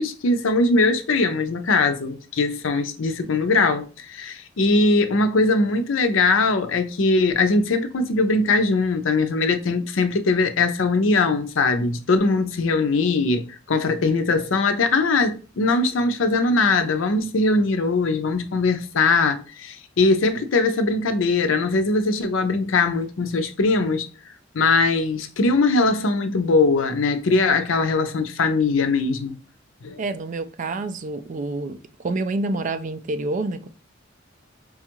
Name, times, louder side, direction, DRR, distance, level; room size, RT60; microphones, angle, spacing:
voice 1, 0.0-24.1 24.5-29.4 29.8-30.0, left 3 dB, 75° left, 0.5 m, -21 dB
voice 2, 30.0-33.7, right 2 dB, 40° right, 0.4 m, -28 dB
5.1 x 2.3 x 2.9 m
head